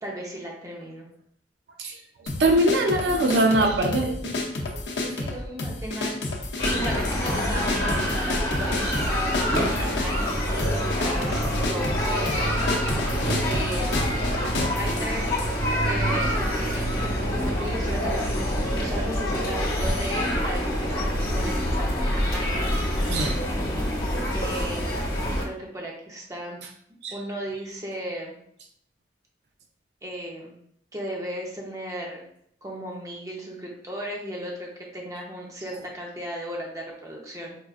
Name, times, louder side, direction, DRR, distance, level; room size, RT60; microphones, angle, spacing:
voice 1, 0.0-1.1 5.0-12.7 13.4-13.9 14.8-15.4 15.8-22.5 24.3-25.0 25.4-26.6 27.1-28.3 30.0-30.5 30.9-32.2 32.6-37.6, right 1 dB, 20° right, -2 dB, 0.7 m, -36 dB
sound 1, 2.3-15.5, left 2 dB, 85° left, 0.6 m, -31 dB
voice 2, 2.4-4.3 8.8-8.9 23.1-23.4 27.0-27.1, right 1 dB, 70° right, 3 dB, 0.4 m, -22 dB
sound 2, 6.6-25.4, equal, 55° left, 1.0 m, -26 dB
4.6 x 2.4 x 2.4 m, 0.69 s
head